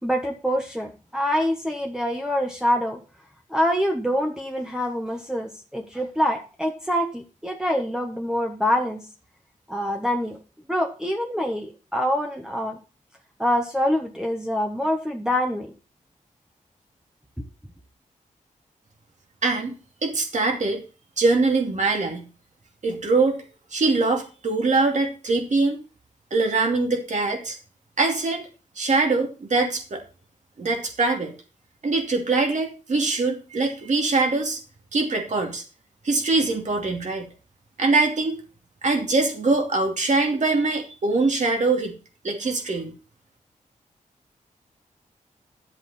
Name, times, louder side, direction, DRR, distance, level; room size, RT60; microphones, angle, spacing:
voice 1, 0.0-3.0 3.5-9.0 9.7-10.4 10.7-12.8 13.4-15.7 17.4-17.5, equal, 5° right, 0 dB, 1.2 m, -25 dB
voice 2, 19.4-19.8 20.0-20.8 21.2-22.3 22.8-23.4 23.7-25.8 26.3-27.6 28.0-28.4 28.8-30.0 30.6-31.3 31.8-34.6 34.9-35.6 36.0-37.3 37.8-38.4 38.8-42.0 42.2-42.9, right 3 dB, 60° right, 3 dB, 2.6 m, -23 dB
11.5 x 7.5 x 4.3 m, 0.34 s
wide cardioid pair, 115°, 14 cm